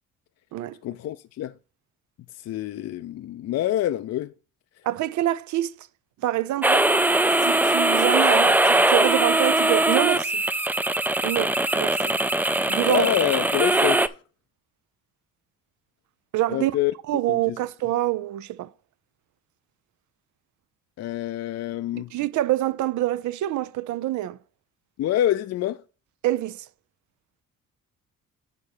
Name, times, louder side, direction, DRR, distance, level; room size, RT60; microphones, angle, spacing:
voice 1, 0.8-1.5 2.4-4.3 12.9-14.2 16.5-16.9 17.3-17.6 21.0-22.1 25.0-25.8, left 13 dB, 60° left, 0.4 m, -26 dB
voice 2, 4.8-5.7 6.2-6.8 7.4-10.4 11.2-12.2 12.7-13.1 16.3-16.7 17.1-18.7 22.0-24.4 26.2-26.7, right 15 dB, 70° right, 0.5 m, -26 dB
sound 1, 6.6-14.1, right 2 dB, 5° right, 0.3 m, -21 dB
9.1 x 3.2 x 6.6 m
cardioid pair, 90°, 30 cm